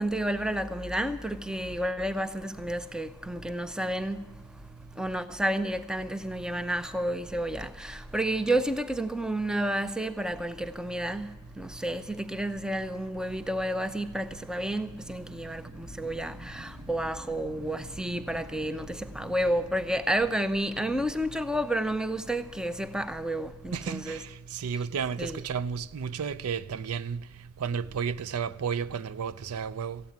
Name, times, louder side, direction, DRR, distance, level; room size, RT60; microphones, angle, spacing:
voice 1, 0.0-4.6 5.0-24.2 25.2-25.4, right 1 dB, 5° right, 0.5 m, -31 dB
Wind, 14.9-21.8, equal, 55° right, 1.3 m, -48 dB
voice 2, 23.7-24.2 24.5-27.2 27.6-30.0, right 6 dB, 80° right, 0.4 m, -32 dB
14.5 x 8.8 x 9.4 m
head